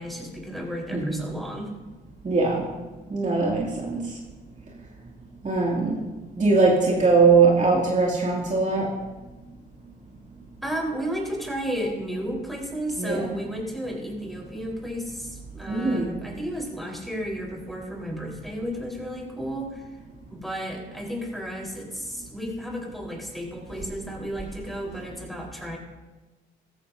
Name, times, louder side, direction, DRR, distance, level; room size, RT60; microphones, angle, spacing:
voice 1, 0.0-1.7 10.6-19.9 20.3-25.8, equal, ahead, -1 dB, 4.4 m, -33 dB
voice 2, 0.9-1.2 2.2-2.6 3.1-4.0 5.4-6.0 6.4-8.9 13.0-13.2 15.7-16.1, right 4 dB, 35° right, -4 dB, 2.7 m, -21 dB
15.0 x 14.0 x 2.8 m, 1.2 s
supercardioid pair, 70°, 20 cm